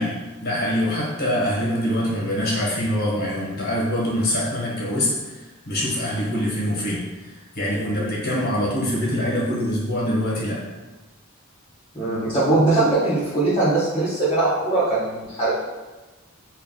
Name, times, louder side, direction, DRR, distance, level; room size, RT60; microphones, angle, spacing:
voice 1, 0.0-5.1 5.7-7.0 7.5-10.6, equal, 45° left, -5 dB, 1.1 m, -24 dB
voice 2, 11.9-15.5, right 2 dB, 25° left, -12 dB, 1.1 m, -21 dB
3.4 x 2.3 x 3.7 m, 1.2 s
head